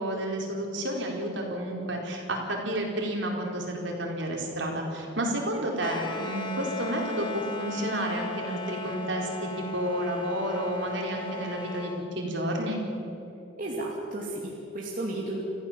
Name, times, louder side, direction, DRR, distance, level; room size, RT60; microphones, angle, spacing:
voice 1, 0.0-12.8, right 1 dB, 65° right, 0 dB, 4.3 m, -31 dB
sound 1, 5.8-12.0, left 3 dB, 25° left, 1.5 m, -37 dB
voice 2, 13.6-15.4, right 2 dB, 45° right, -4 dB, 2.6 m, -33 dB
28.5 x 15.0 x 7.5 m, 2.8 s
head